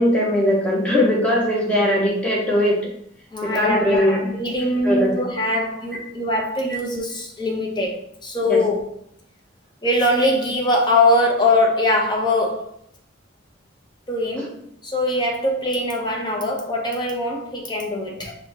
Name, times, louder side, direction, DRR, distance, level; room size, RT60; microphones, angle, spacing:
voice 1, 0.0-2.8 3.4-4.4 4.8-5.1 8.4-8.6, equal, 5° left, -4 dB, 1.1 m, -19 dB
voice 2, 3.3-8.8 9.8-12.7 14.1-14.5 14.8-18.3, left 1 dB, 20° left, 0 dB, 0.8 m, -22 dB
5.0 x 2.8 x 3.6 m, 0.69 s
head